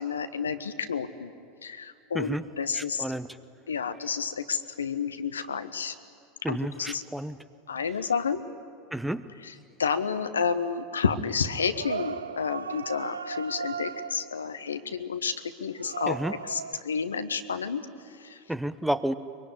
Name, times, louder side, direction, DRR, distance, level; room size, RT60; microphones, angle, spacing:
voice 1, 0.0-1.3 1.6-3.1 3.7-5.9 6.5-7.0 7.7-8.4 9.4-15.3 15.6-16.2 16.4-18.4, left 6 dB, 85° left, 10 dB, 1.1 m, -30 dB
voice 2, 2.7-3.4 6.4-7.4 8.9-9.3 16.1-16.3 18.5-19.1, right 1 dB, 5° right, 13 dB, 1.0 m, -31 dB
sound 1, 11.7-14.4 15.8-16.8, right 6 dB, 85° right, 0.6 m, -36 dB
23.5 x 23.0 x 9.7 m, 2.5 s
hypercardioid pair, 85°, 0 cm